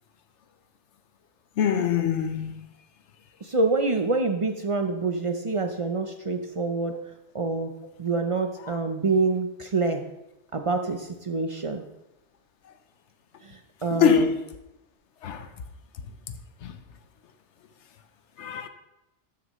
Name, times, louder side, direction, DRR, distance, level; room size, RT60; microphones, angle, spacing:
voice 1, 1.6-2.6 13.9-14.4 15.2-15.5 16.6-16.7 18.4-18.7, left 8 dB, 85° left, 1.1 m, -23 dB
voice 2, 3.4-7.0 7.3-7.7 8.0-10.0 10.5-11.8 13.4-14.3, right 3 dB, 40° right, 0.5 m, -26 dB
12.5 x 6.7 x 3.1 m
omnidirectional pair, 1.2 m